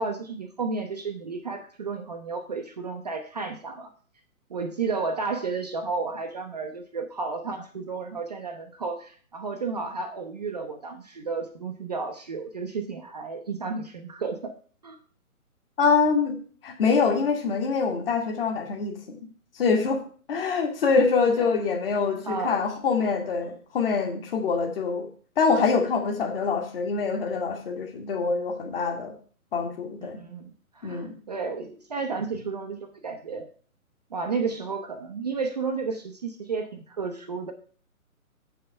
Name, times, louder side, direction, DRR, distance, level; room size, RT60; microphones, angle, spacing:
voice 1, 0.0-3.9 4.5-14.5 14.8-15.0 21.0-21.1 21.4-21.5 22.3-22.6 30.0-33.5 34.1-37.5, right 4 dB, 30° right, 4 dB, 0.6 m, -32 dB
voice 2, 15.8-16.4 16.6-19.2 19.5-20.0 20.3-25.1 25.4-29.1 29.5-30.2 30.8-31.2, left 5 dB, 40° left, 3 dB, 1.8 m, -25 dB
7.4 x 5.5 x 5.5 m, 0.43 s
figure-of-eight pair, 140°, 44 cm